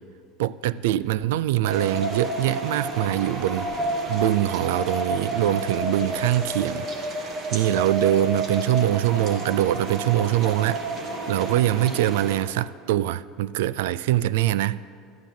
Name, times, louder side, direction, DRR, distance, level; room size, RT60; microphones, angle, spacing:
voice 1, 0.4-3.7 4.1-6.9 7.5-10.8 11.3-14.8, right 13 dB, 90° right, 18 dB, 0.3 m, -23 dB
sound 1, 1.6-12.4, right 2 dB, 30° right, 1.3 m, -30 dB
11.5 x 7.1 x 9.2 m, 2.2 s
cardioid pair, 170°, 0 cm